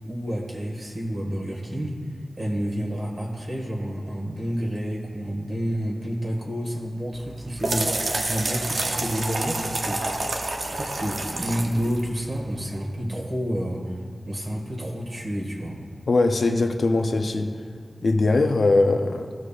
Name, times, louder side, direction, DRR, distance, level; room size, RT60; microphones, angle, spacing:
voice 1, 0.0-2.0 2.4-10.3 10.6-14.0 14.2-15.8, equal, 50° right, -1 dB, 1.6 m, -29 dB
sound 1, 7.1-12.7, right 2 dB, 75° right, 0.8 m, -29 dB
voice 2, 16.1-17.5 18.0-19.3, left 3 dB, 75° left, 5 dB, 0.6 m, -21 dB
14.0 x 6.4 x 2.5 m, 2.3 s
wide cardioid pair, 55°, 0 cm